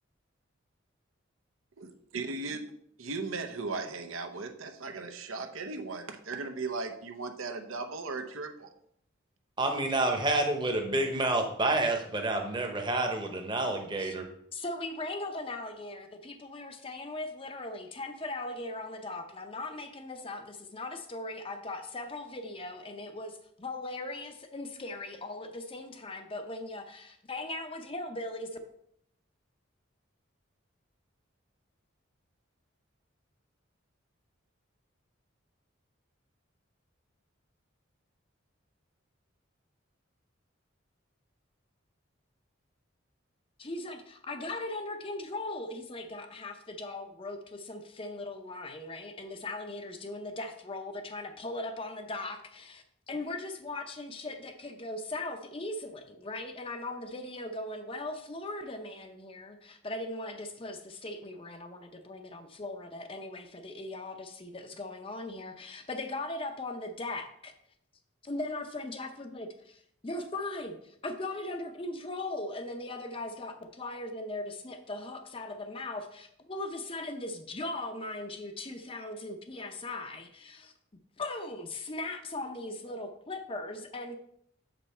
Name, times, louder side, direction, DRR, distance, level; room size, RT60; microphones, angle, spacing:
voice 1, 1.8-2.6 3.0-8.7, right 3 dB, 85° right, 6 dB, 0.9 m, -37 dB
voice 2, 9.6-14.2, right 2 dB, 20° right, 4 dB, 0.9 m, -29 dB
voice 3, 14.5-28.5 43.6-67.5 68.2-80.7 81.2-84.2, left 2 dB, 25° left, 6 dB, 0.6 m, -39 dB
7.1 x 5.4 x 4.3 m, 0.71 s
head